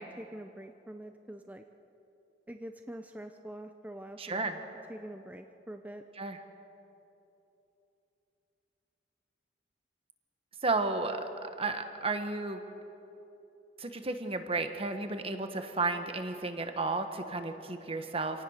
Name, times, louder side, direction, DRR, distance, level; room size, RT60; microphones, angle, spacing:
voice 1, 0.0-1.6 2.5-4.5 4.9-6.0, right 1 dB, 10° right, 6 dB, 0.6 m, -45 dB
voice 2, 4.2-4.6 6.2-6.4 10.6-12.6 13.8-18.4, right 3 dB, 35° right, 7 dB, 1.5 m, -33 dB
27.0 x 18.0 x 6.6 m, 2.9 s
head